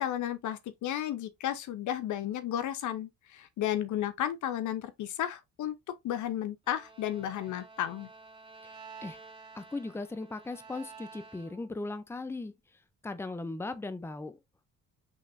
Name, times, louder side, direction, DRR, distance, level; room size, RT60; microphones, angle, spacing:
voice 1, 0.0-5.7 6.0-8.1, left 11 dB, 75° left, 0.8 m, -33 dB
Bowed string instrument, 6.6-11.8, right 4 dB, 15° right, 1.8 m, -51 dB
voice 2, 9.5-12.5 13.0-14.4, left 2 dB, 10° left, 0.6 m, -38 dB
5.6 x 3.1 x 2.6 m
cardioid pair, 90°, 30 cm